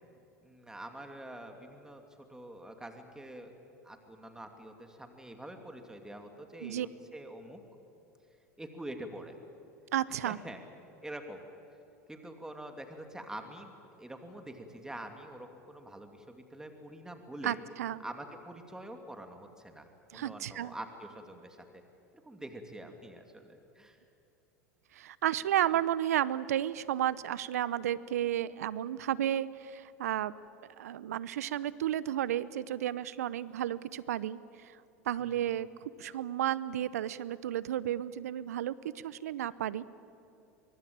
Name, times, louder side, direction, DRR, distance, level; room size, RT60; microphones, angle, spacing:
voice 1, 0.4-3.5 3.8-7.6 8.6-9.4 10.2-10.6 11.0-11.4 12.1-13.7 14.0-17.6 18.0-21.8 22.3-24.0 35.2-35.3, right 1 dB, 5° right, 5 dB, 2.7 m, -46 dB
voice 2, 9.9-10.4 17.4-18.0 20.1-20.7 24.9-30.3 30.8-34.8 35.0-39.8, right 11 dB, 80° right, 19 dB, 0.8 m, -32 dB
24.0 x 22.5 x 8.9 m, 2.8 s
hypercardioid pair, 85°, 8 cm